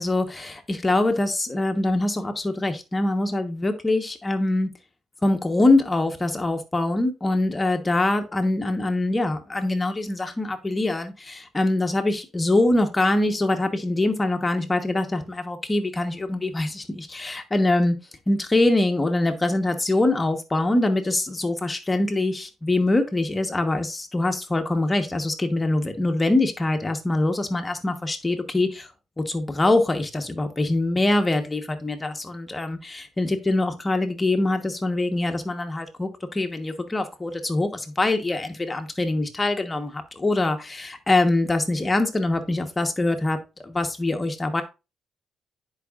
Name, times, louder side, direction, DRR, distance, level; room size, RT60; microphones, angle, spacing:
voice 1, 0.0-4.7 5.2-17.9 18.3-28.9 29.2-43.4 43.6-44.6, left 2 dB, 20° left, 6 dB, 1.2 m, -24 dB
10.0 x 4.9 x 2.5 m, 0.28 s
cardioid pair, 90°, 0 cm